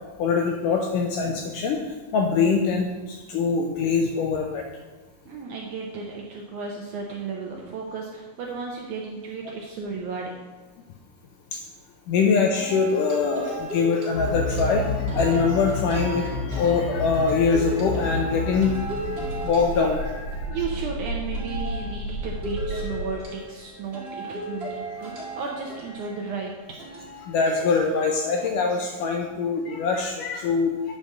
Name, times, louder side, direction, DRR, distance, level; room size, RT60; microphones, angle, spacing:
voice 1, 0.2-4.7 11.5-11.6 12.1-20.5 27.2-30.7, left 5 dB, 80° left, 2 dB, 1.9 m, -24 dB
voice 2, 5.3-10.3 20.5-26.5, right 5 dB, 75° right, 0 dB, 1.8 m, -34 dB
sound 1, 12.5-20.8 21.3-28.5, right 1 dB, 45° right, 0.8 m, -36 dB
sound 2, 14.1-23.1, left 2 dB, 40° left, 2.3 m, -30 dB
8.7 x 5.1 x 6.4 m, 1.2 s
omnidirectional pair, 4.4 m